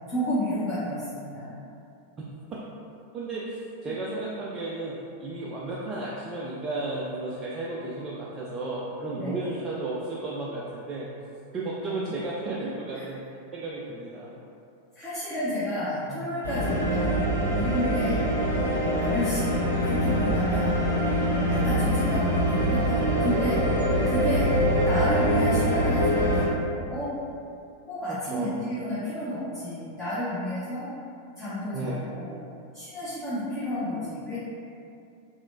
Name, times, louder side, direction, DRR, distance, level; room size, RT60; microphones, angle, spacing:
voice 1, 0.1-1.5 3.8-3.9 9.1-9.5 11.9-12.0 12.9-13.0 14.9-18.2 18.8-20.8 21.3-23.7 24.1-27.1 27.9-30.9 31.4-32.4 32.7-34.4, left 1 dB, 15° left, -13 dB, 0.7 m, -31 dB
voice 2, 3.1-4.9 5.2-11.1 11.5-13.2 13.5-14.3 16.1-16.3 18.0-18.3 21.6-21.7 24.7-24.9 28.1-28.6 31.7-32.0, right 2 dB, 25° right, -7 dB, 0.3 m, -33 dB
sound 1, 16.4-26.5, equal, 85° right, 0.6 m, -24 dB
3.0 x 2.1 x 2.5 m, 2.6 s
figure-of-eight pair, 90°, 0 cm